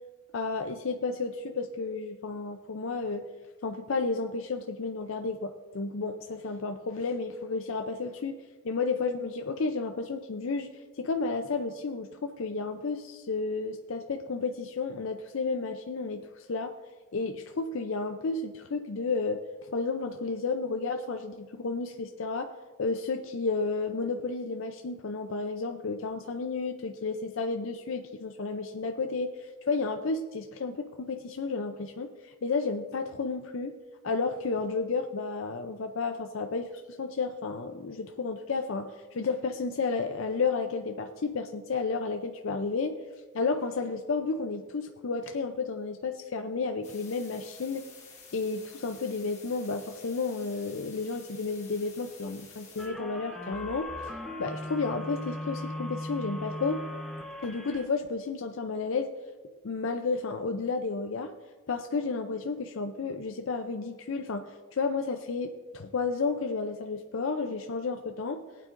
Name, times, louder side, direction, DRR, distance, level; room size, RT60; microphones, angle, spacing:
voice 1, 0.3-3.3 3.6-8.4 8.6-10.7 11.0-16.7 17.1-19.4 19.7-22.5 22.8-33.7 34.0-36.7 37.0-43.0 43.3-47.9 48.3-53.9 54.4-56.8 57.4-59.1 59.6-61.3 61.7-68.4, left 4 dB, 70° left, 6 dB, 0.5 m, -32 dB
sound 1, 46.8-52.9, left 5 dB, 35° left, 1.7 m, -51 dB
sound 2, 52.8-57.8, left 1 dB, ahead, 0.9 m, -38 dB
19.5 x 9.0 x 2.6 m, 1.3 s
head